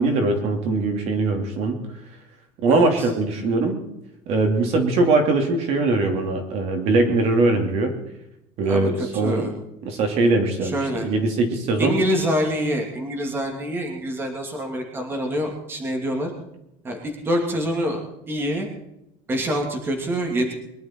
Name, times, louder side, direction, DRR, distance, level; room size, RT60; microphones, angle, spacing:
voice 1, 0.0-1.8 2.6-3.8 4.3-7.9 8.6-9.5 9.8-10.7 11.0-12.0, right 3 dB, 50° right, 5 dB, 2.9 m, -21 dB
voice 2, 2.7-3.1 8.6-9.5 10.6-11.1 11.8-16.3 16.8-18.7 19.3-20.5, equal, 15° right, 3 dB, 2.7 m, -26 dB
23.0 x 11.5 x 4.6 m, 0.82 s
cardioid pair, 175°, 14 cm